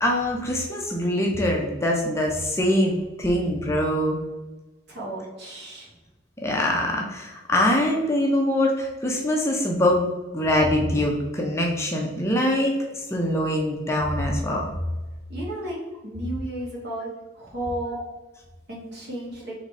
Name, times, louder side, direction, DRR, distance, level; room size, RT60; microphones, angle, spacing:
voice 1, 0.0-4.2 6.4-10.1 10.3-14.7 17.9-18.0, left 1 dB, 15° left, -1 dB, 0.5 m, -23 dB
voice 2, 4.9-5.9 15.3-15.8 16.0-17.1 17.3-17.9 18.7-19.5, right 1 dB, 55° right, -4 dB, 1.5 m, -33 dB
3.9 x 3.1 x 4.0 m, 1.2 s
head